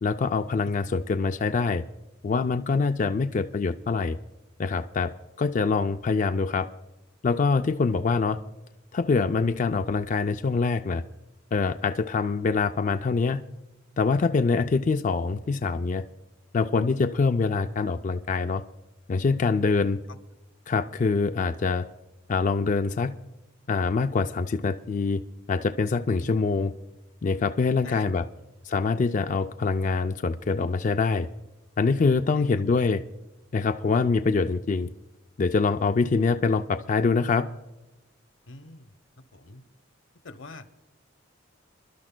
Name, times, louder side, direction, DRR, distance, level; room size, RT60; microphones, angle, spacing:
voice 1, 0.0-1.8 2.2-4.2 4.6-5.1 5.4-6.7 7.2-8.4 8.9-11.0 11.5-13.4 14.0-16.0 16.5-18.6 19.1-20.0 20.7-21.9 22.3-23.1 23.7-25.2 25.5-26.7 27.2-28.2 28.6-31.3 31.8-33.0 33.5-34.9 35.4-37.5, left 4 dB, 40° left, 7 dB, 0.4 m, -24 dB
voice 2, 26.2-26.6 27.8-28.1 38.5-38.9 39.3-39.6 40.2-40.7, left 3 dB, 90° left, 9 dB, 0.9 m, -44 dB
28.5 x 12.0 x 2.2 m, 1.0 s
head